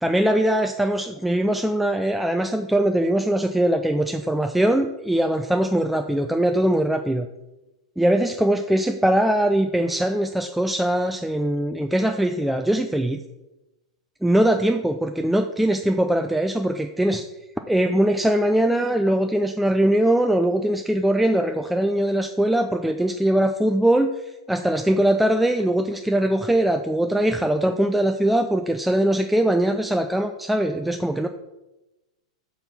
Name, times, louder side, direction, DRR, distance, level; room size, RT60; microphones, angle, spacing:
voice 1, 0.0-7.3 8.0-13.2 14.2-17.3 17.7-31.3, right 1 dB, 5° right, 5 dB, 0.3 m, -21 dB
5.3 x 4.0 x 5.6 m, 1.0 s
figure-of-eight pair, 100°, 3 cm